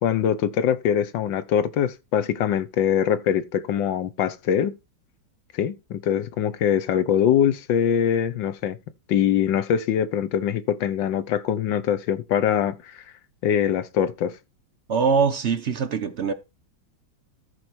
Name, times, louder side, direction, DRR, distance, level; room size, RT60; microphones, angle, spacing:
voice 1, 0.0-4.7 5.5-8.8 9.1-13.0 13.4-14.3, left 9 dB, 70° left, 1.5 m, -23 dB
voice 2, 14.9-16.3, right 5 dB, 65° right, 0.7 m, -22 dB
14.0 x 4.8 x 4.4 m
omnidirectional pair, 2.1 m